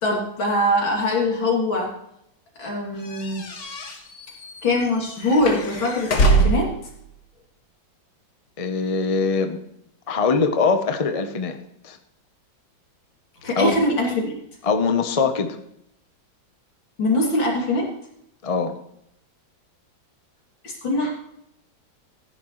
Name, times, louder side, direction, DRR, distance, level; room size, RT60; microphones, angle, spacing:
voice 1, 0.0-1.9 2.6-3.4 4.6-6.7 13.4-14.4 17.0-17.9 20.6-21.1, left 1 dB, 75° left, -1 dB, 3.7 m, -22 dB
sound 1, 3.0-6.8, right 2 dB, 50° left, 1.8 m, -23 dB
voice 2, 8.6-9.6 10.1-11.6 11.8-12.0 13.6-13.7 14.6-15.6 18.4-18.7, left 4 dB, 30° left, 7 dB, 0.6 m, -22 dB
15.0 x 10.5 x 3.2 m, 0.76 s
omnidirectional pair, 2.1 m